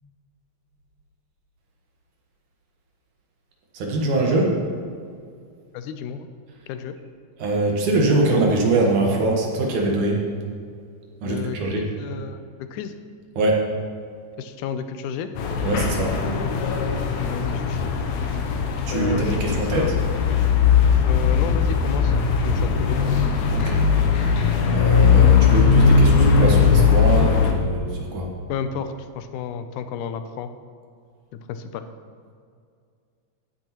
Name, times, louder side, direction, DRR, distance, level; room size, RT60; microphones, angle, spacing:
voice 1, 3.7-4.6 7.4-10.2 11.2-11.8 13.4-13.6 15.6-16.2 18.9-20.0 23.5-23.8 24.7-28.3, right 2 dB, 80° right, 0 dB, 2.9 m, -22 dB
voice 2, 5.7-6.3 6.7-6.9 11.2-12.9 14.4-15.3 17.3-17.9 18.9-19.9 21.1-22.2 22.4-23.0 28.5-30.5 31.3-31.9, left 8 dB, 90° left, 9 dB, 2.1 m, -32 dB
road underpass, 15.4-27.5, left 6 dB, 70° left, 1.9 m, -19 dB
14.0 x 8.9 x 3.0 m, 2.2 s
omnidirectional pair, 3.5 m